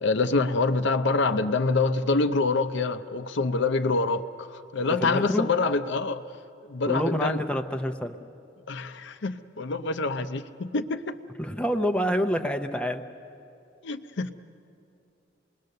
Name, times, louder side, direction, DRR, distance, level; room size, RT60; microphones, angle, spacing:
voice 1, 0.0-6.2 6.7-7.4 8.7-11.2 13.8-14.3, left 3 dB, 65° left, 10 dB, 0.6 m, -26 dB
voice 2, 4.9-5.5 6.9-8.2 11.4-13.0, equal, 5° left, 5 dB, 0.7 m, -27 dB
27.0 x 20.0 x 6.7 m, 2.6 s
head